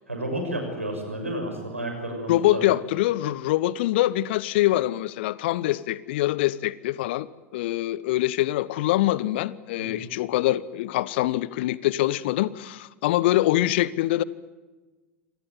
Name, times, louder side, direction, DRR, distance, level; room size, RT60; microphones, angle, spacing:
voice 1, 0.1-2.7 9.8-10.0, right 1 dB, 85° right, 4 dB, 6.4 m, -31 dB
voice 2, 2.3-14.2, left 15 dB, 55° left, 20 dB, 0.9 m, -24 dB
25.5 x 19.0 x 9.2 m, 1.2 s
figure-of-eight pair, 85°, 7 cm